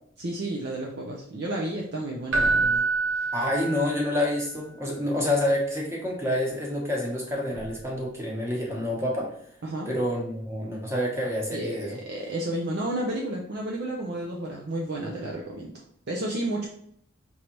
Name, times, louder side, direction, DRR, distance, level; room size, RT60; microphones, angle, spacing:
voice 1, 0.2-2.8 3.1-3.3 9.6-9.9 11.5-15.7 16.1-16.7, right 1 dB, 55° right, -2 dB, 0.7 m, -31 dB
Keyboard (musical), 2.3-4.3 7.5-7.7, right 3 dB, 75° right, 1.1 m, -26 dB
voice 2, 3.3-9.3 9.9-12.0, left 1 dB, 15° right, -2 dB, 1.1 m, -28 dB
5.3 x 3.2 x 3.0 m, 0.66 s
head